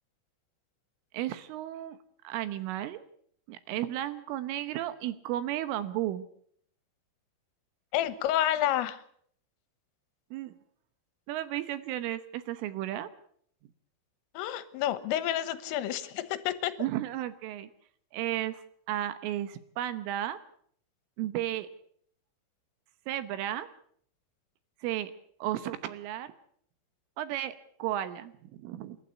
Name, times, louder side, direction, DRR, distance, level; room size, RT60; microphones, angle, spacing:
voice 1, 1.1-2.0 2.2-3.0 3.5-6.3 10.3-10.5 11.3-13.1 16.8-17.7 18.1-20.4 21.2-21.7 23.1-23.7 24.8-25.1 25.4-26.3 27.2-27.5 27.8-29.0, right 13 dB, 80° right, 13 dB, 3.4 m, -33 dB
voice 2, 7.9-9.0 14.4-16.7, left 12 dB, 80° left, 14 dB, 3.6 m, -29 dB
29.5 x 12.0 x 8.3 m, 0.65 s
omnidirectional pair, 6.0 m